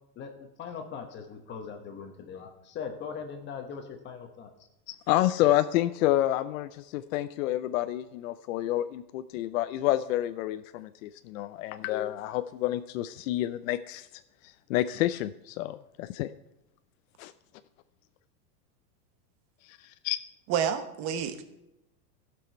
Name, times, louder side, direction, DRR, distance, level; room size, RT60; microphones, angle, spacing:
voice 1, 0.2-4.5, left 6 dB, 25° left, 5 dB, 1.0 m, -40 dB
voice 2, 4.9-14.1 14.4-16.3 17.2-17.3 19.7-20.2, left 14 dB, 60° left, 11 dB, 0.5 m, -29 dB
voice 3, 20.5-21.4, right 8 dB, 35° right, 8 dB, 1.0 m, -29 dB
15.5 x 6.2 x 4.4 m, 0.91 s
supercardioid pair, 155°, 47 cm